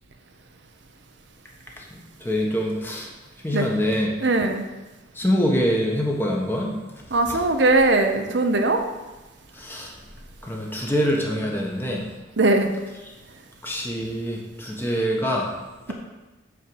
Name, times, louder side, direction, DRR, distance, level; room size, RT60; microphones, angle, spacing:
voice 1, 2.2-3.1 3.4-4.1 5.2-6.7 7.3-7.4 9.6-9.9 10.4-12.0 13.6-15.5, equal, 10° left, -1 dB, 1.5 m, -24 dB
voice 2, 4.2-4.6 7.1-8.8 12.4-12.7, right 2 dB, 70° right, 5 dB, 0.9 m, -20 dB
9.3 x 4.6 x 7.2 m, 1.2 s
head